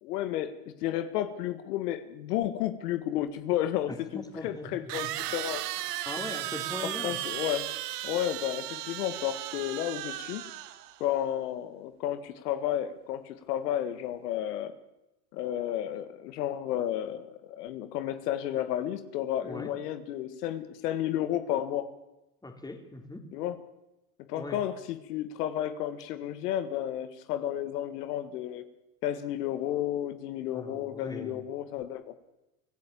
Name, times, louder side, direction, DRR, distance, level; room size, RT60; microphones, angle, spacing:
voice 1, 0.0-5.6 7.0-7.7 8.0-10.4 11.0-14.7 15.3-21.9 23.3-23.5 24.3-28.6 29.0-32.1, left 11 dB, 75° left, 11 dB, 1.9 m, -32 dB
sound 1, 3.3-3.4 4.9-11.0, right 14 dB, 75° right, 1.8 m, -36 dB
voice 2, 3.9-5.2 6.0-7.2 19.4-19.7 22.4-23.3 24.3-24.6 30.5-31.5, left 2 dB, 10° left, 5 dB, 3.4 m, -40 dB
25.5 x 14.5 x 8.6 m, 0.94 s
supercardioid pair, 115°, 47 cm